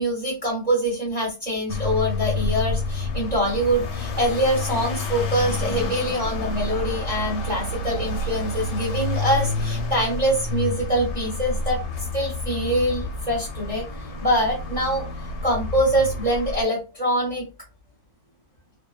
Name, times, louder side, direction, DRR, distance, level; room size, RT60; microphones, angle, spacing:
voice 1, 0.0-11.8 12.1-13.8 14.2-15.0 15.4-17.5, right 1 dB, 40° right, -2 dB, 0.6 m, -24 dB
sound 1, 1.7-16.6, left 3 dB, 80° left, 1.2 m, -29 dB
2.8 x 2.1 x 2.2 m, 0.31 s
omnidirectional pair, 1.8 m